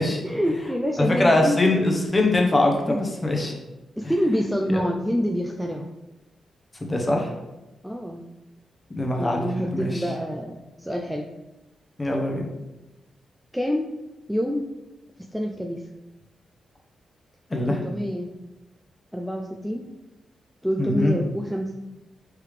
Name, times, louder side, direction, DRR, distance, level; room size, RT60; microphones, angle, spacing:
voice 1, 0.2-1.8 2.9-3.1 4.0-5.9 7.8-8.2 9.2-11.3 13.5-13.9 14.3-14.7 15.3-15.8 17.7-18.3 19.1-19.9 20.6-21.7, equal, ahead, 1 dB, 0.4 m, -26 dB
voice 2, 1.0-3.5 6.8-7.3 9.0-9.9 12.0-12.5 17.5-17.7 20.8-21.1, left 2 dB, 25° left, 1 dB, 0.9 m, -22 dB
4.6 x 3.4 x 3.3 m, 1.0 s
cardioid pair, 90°, 0 cm